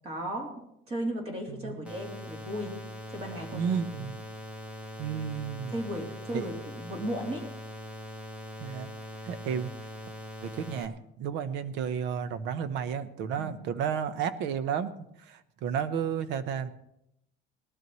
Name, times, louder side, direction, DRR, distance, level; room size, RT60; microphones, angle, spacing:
voice 1, 0.0-0.5 0.9-2.8 3.1-3.8 5.7-7.5 13.4-13.5, equal, 30° right, 1 dB, 3.1 m, -35 dB
voice 2, 1.5-1.9 3.5-4.1 5.0-5.7 6.3-6.5 8.6-8.9 9.2-9.7 10.4-14.9 15.3-16.7, right 7 dB, 60° right, 12 dB, 1.0 m, -32 dB
sound 1, 1.8-10.8, equal, 5° right, 1.1 m, -42 dB
20.0 x 12.5 x 3.1 m, 0.78 s
cardioid pair, 160°, 20 cm